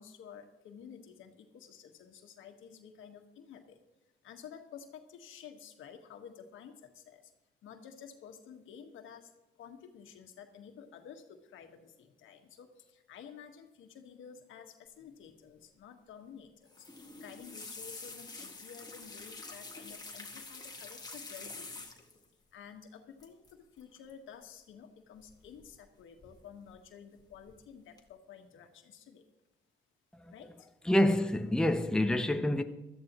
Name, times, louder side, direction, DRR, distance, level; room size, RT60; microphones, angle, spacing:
voice 1, 0.0-3.8 4.2-7.3 7.6-9.3 9.6-16.9 17.2-21.9 22.5-29.2 30.3-30.7, left 7 dB, 80° left, 1.5 m, -52 dB
sound 1, 16.7-22.2 23.2-23.5 23.8-24.1 25.3-25.9 26.2-26.8 27.2-27.6 28.0-28.1, left 3 dB, 20° left, 1.8 m, -47 dB
voice 2, 30.8-32.6, left 1 dB, 5° left, 0.8 m, -27 dB
16.5 x 13.0 x 3.1 m
cardioid pair, 90°, 20 cm